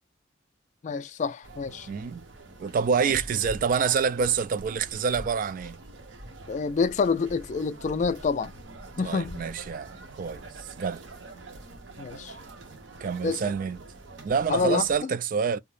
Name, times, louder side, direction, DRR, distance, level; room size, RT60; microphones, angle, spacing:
voice 1, 0.8-1.9 3.0-3.1 6.5-8.5 9.0-9.4 12.0-12.4 13.2-13.5 14.5-15.1, left 5 dB, 40° left, 0.3 m, -28 dB
sound 1, 1.4-15.0, right 2 dB, 75° right, 0.7 m, -45 dB
voice 2, 1.9-2.2 2.6-5.8 9.0-9.9 10.2-10.4 10.8-11.0 13.0-13.8 14.2-15.6, right 6 dB, 45° right, 0.3 m, -27 dB
2.3 x 2.0 x 3.2 m
head